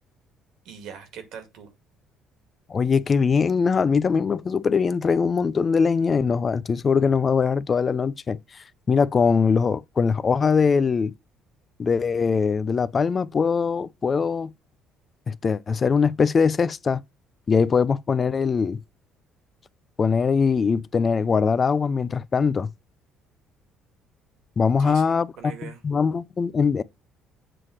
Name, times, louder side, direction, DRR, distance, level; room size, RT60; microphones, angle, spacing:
voice 1, 0.7-1.7 24.8-25.8, right 7 dB, 75° right, 2.0 m, -41 dB
voice 2, 2.7-11.1 11.8-14.5 15.3-17.0 17.5-18.8 20.0-22.7 24.6-26.8, left 5 dB, 30° left, 0.3 m, -22 dB
7.6 x 3.2 x 6.2 m
cardioid pair, 115°, 0 cm